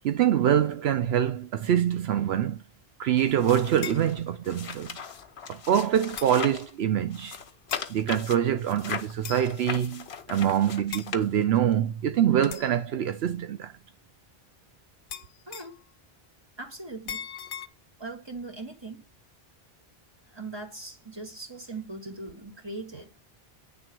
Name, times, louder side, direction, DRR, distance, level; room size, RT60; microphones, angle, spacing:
voice 1, 0.0-2.6 3.0-5.0 5.5-7.4 7.9-13.7, right 10 dB, 80° right, 0.9 m, -25 dB
sound 1, 3.2-6.7 7.1-11.7 12.4-12.5, left 6 dB, 85° left, 1.1 m, -39 dB
sound 2, 3.8-4.1 5.2-5.3 6.2-6.4 7.7-7.9 9.2-9.6 10.9-11.1 12.5-12.8 15.1-15.8 17.1-17.7, left 8 dB, 60° left, 0.7 m, -38 dB
voice 2, 15.5-15.8 16.6-17.3 18.0-19.1 20.2-23.1, right 3 dB, 25° right, 1.9 m, -40 dB
9.5 x 3.6 x 6.1 m
omnidirectional pair, 1.0 m